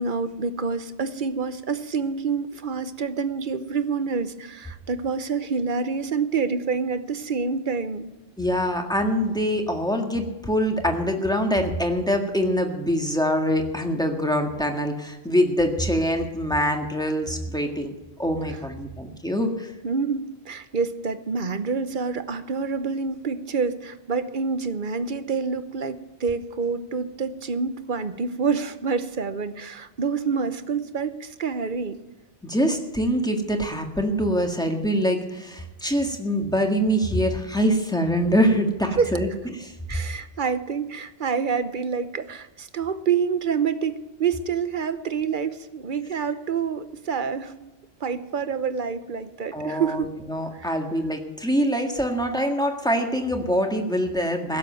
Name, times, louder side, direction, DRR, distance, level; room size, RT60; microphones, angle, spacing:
voice 1, 0.0-8.1 19.8-32.0 39.0-39.1 39.9-47.7 48.0-50.1 50.5-50.7, right 5 dB, 50° right, 12 dB, 1.0 m, -27 dB
voice 2, 8.4-17.9 18.2-19.7 32.4-39.3 39.5-39.7 49.5-54.6, equal, 5° left, 3 dB, 1.7 m, -24 dB
16.5 x 7.6 x 9.1 m, 1.0 s
omnidirectional pair, 1.1 m